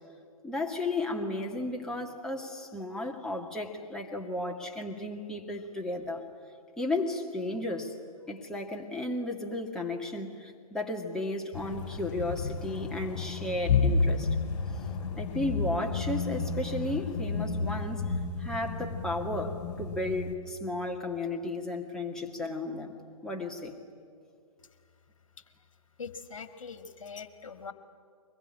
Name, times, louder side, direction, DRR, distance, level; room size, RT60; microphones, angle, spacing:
voice 1, 0.4-6.3 6.8-7.9 8.3-14.3 15.2-22.9 23.2-23.8, left 2 dB, 5° left, -1 dB, 2.1 m, -34 dB
sound 1, 11.5-20.3, left 4 dB, 35° left, 4.4 m, -31 dB
voice 2, 26.0-27.7, left 5 dB, 60° left, 9 dB, 1.9 m, -42 dB
23.5 x 21.5 x 9.9 m, 2.3 s
figure-of-eight pair, 125°, 18 cm